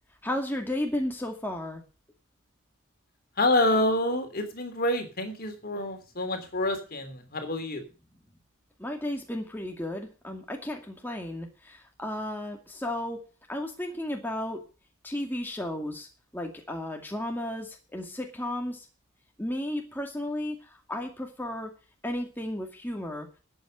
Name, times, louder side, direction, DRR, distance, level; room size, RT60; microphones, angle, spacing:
voice 1, 0.2-1.8 8.8-13.2 13.5-14.6 15.0-16.1 16.3-18.9 19.4-20.6 20.9-21.7 22.0-23.3, left 1 dB, 10° left, 2 dB, 2.2 m, -33 dB
voice 2, 3.4-7.8, left 1 dB, 45° left, 7 dB, 3.2 m, -27 dB
13.0 x 8.8 x 6.5 m, 0.34 s
head